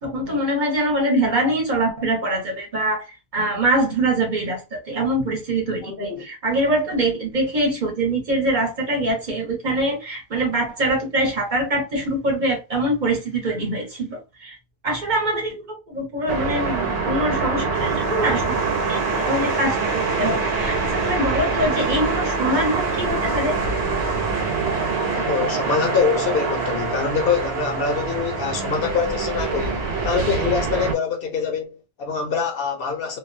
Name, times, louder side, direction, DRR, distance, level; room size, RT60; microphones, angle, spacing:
voice 1, 0.0-3.0 3.3-14.6 14.8-23.6, right 1 dB, 50° right, 1.0 m, -24 dB
voice 2, 5.8-6.3 25.1-33.2, left 5 dB, 65° left, 0.8 m, -24 dB
sound 1, 16.3-30.9, right 4 dB, 70° right, 1.0 m, -24 dB
2.4 x 2.2 x 2.5 m
omnidirectional pair, 1.1 m